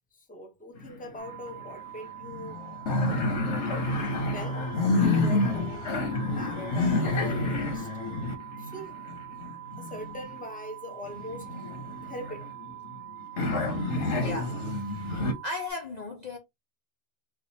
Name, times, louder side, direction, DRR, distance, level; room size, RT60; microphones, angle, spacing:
voice 1, 0.1-2.6 4.2-4.6 5.0-7.9 8.6-9.0 9.8-11.6 12.0-12.4, left 1 dB, 10° left, 0.8 m, -42 dB
sound 1, 0.8-1.5 1.8-1.9 2.2-10.4 11.1-13.0 13.4-15.3, left 2 dB, 80° left, 1.2 m, -29 dB
sound 2, 1.2-15.7, right 15 dB, 35° right, 0.6 m, -44 dB
voice 2, 14.2-14.6 14.9-16.4, left 3 dB, 45° left, 0.7 m, -37 dB
4.8 x 2.4 x 2.8 m
omnidirectional pair, 1.2 m